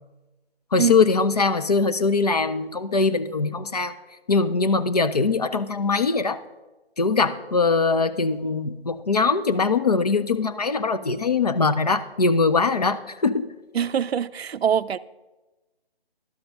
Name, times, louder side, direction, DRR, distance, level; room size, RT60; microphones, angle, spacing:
voice 1, 0.7-3.9 4.3-6.4 7.0-13.5, left 4 dB, 40° left, 0.4 m, -22 dB
voice 2, 13.7-15.0, right 8 dB, 75° right, 0.5 m, -23 dB
11.5 x 6.7 x 5.3 m
figure-of-eight pair, 155°, 31 cm